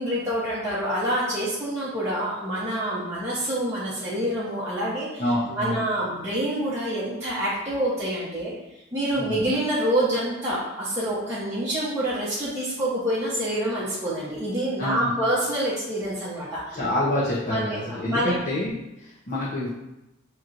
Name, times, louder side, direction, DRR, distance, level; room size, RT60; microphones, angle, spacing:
voice 1, 0.0-5.2 5.5-8.5 8.9-16.8 17.5-17.8 18.1-18.3, right 1 dB, 15° right, -11 dB, 0.9 m, -27 dB
voice 2, 5.2-5.8 9.2-9.4 14.8-15.1 16.7-19.7, left 1 dB, 40° left, -8 dB, 0.8 m, -27 dB
6.0 x 3.0 x 2.6 m, 0.95 s
head